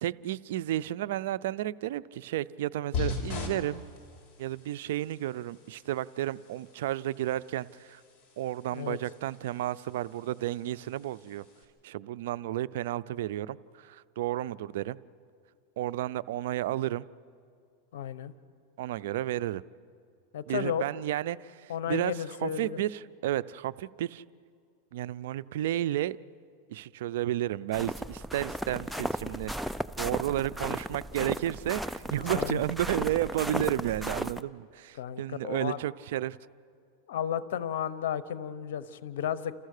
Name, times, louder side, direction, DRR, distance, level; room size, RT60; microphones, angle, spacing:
voice 1, 0.0-3.9 4.4-8.0 8.4-11.4 11.8-15.0 15.8-17.1 18.8-19.6 20.5-24.2 24.9-26.2 26.7-36.4, right 13 dB, 70° right, 17 dB, 0.4 m, -32 dB
sound 1, 2.9-11.6, left 4 dB, 40° left, 4.4 m, -41 dB
voice 2, 17.9-18.3 20.3-20.8 21.7-22.8 32.2-32.6 34.9-35.8 37.1-39.5, left 9 dB, 75° left, 14 dB, 1.0 m, -33 dB
sound 2, 27.7-34.4, right 1 dB, ahead, 0.5 m, -35 dB
30.0 x 14.0 x 6.6 m, 2.3 s
supercardioid pair, 135°, 0 cm